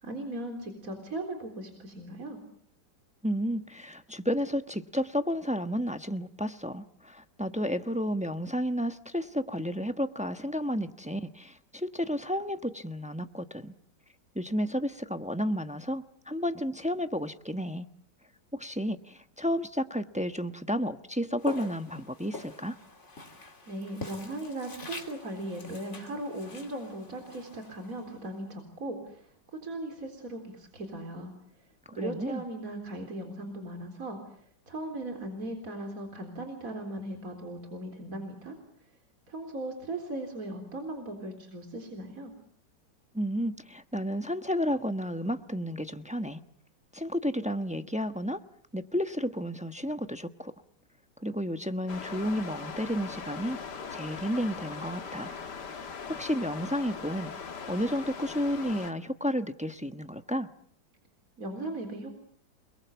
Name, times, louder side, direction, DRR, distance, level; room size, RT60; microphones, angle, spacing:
voice 1, 0.0-2.4 23.7-31.3 31.9-34.2 34.7-38.5 39.3-42.3 61.4-62.1, right 1 dB, 50° right, 5 dB, 4.3 m, -38 dB
voice 2, 3.2-13.7 14.3-17.9 18.5-22.8 31.9-32.4 43.1-46.4 46.9-48.4 48.7-50.5 51.2-53.6 53.9-55.3 55.7-55.8 56.1-60.5, equal, 5° right, 9 dB, 0.7 m, -32 dB
Walk footsteps, 21.4-28.5, left 2 dB, 40° left, 3.4 m, -44 dB
sound 1, 51.9-58.9, left 5 dB, 65° left, 2.3 m, -40 dB
29.0 x 22.0 x 8.2 m, 0.62 s
omnidirectional pair, 2.0 m